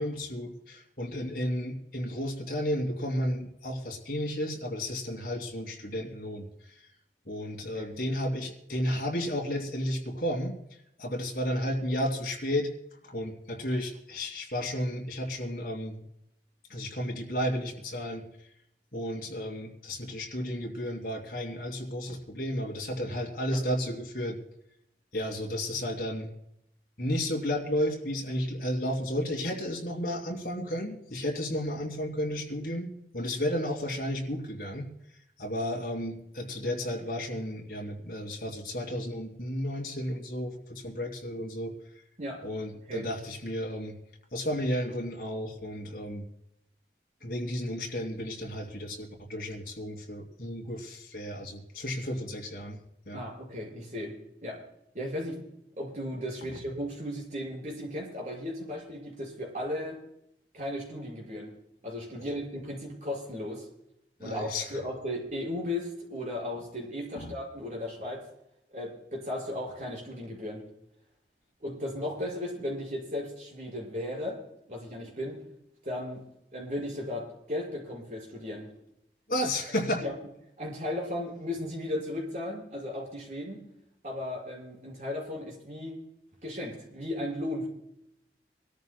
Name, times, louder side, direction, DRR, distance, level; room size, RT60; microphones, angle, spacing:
voice 1, 0.0-6.5 7.3-10.6 11.0-12.7 13.1-16.0 16.7-18.2 18.9-24.4 25.1-26.3 27.0-34.9 35.4-41.7 42.4-43.9 44.3-46.2 47.2-52.8 53.1-53.2 62.2-62.3 64.2-64.6 67.1-67.3 79.3-80.0, equal, 55° left, 3 dB, 2.6 m, -33 dB
voice 2, 53.1-54.1 54.4-54.6 54.9-55.5 55.8-60.0 60.5-61.5 61.8-63.7 64.2-68.2 68.7-70.6 71.6-74.4 74.7-75.4 75.8-76.2 76.5-78.7 79.4-79.5 80.0-80.2 80.6-83.6 84.0-86.0 86.4-87.7, left 1 dB, 45° right, -1 dB, 5.5 m, -35 dB
25.5 x 13.5 x 2.3 m, 0.78 s
head